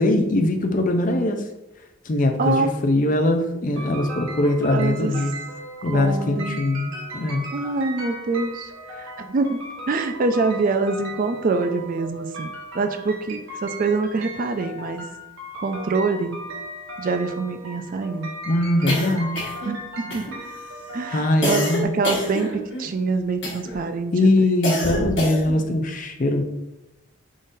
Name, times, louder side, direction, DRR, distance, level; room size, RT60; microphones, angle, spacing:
voice 1, 0.0-1.4 2.0-5.3 5.8-7.4 18.4-19.5 21.1-21.9 24.1-26.4, left 1 dB, 40° left, 6 dB, 0.5 m, -21 dB
voice 2, 2.4-2.7 4.7-5.1 5.9-6.7 7.5-15.1 15.6-16.4 17.0-18.3 19.6-20.3 20.9-21.6 21.9-24.3, right 3 dB, 40° right, 7 dB, 0.3 m, -25 dB
sound 1, 3.8-21.8, right 1 dB, 70° right, 1.2 m, -37 dB
sound 2, 18.9-19.8 20.1-20.6 21.4-22.9 23.4-23.8 24.6-25.6, left 1 dB, 55° left, 1.2 m, -27 dB
5.2 x 3.8 x 2.6 m, 0.96 s
head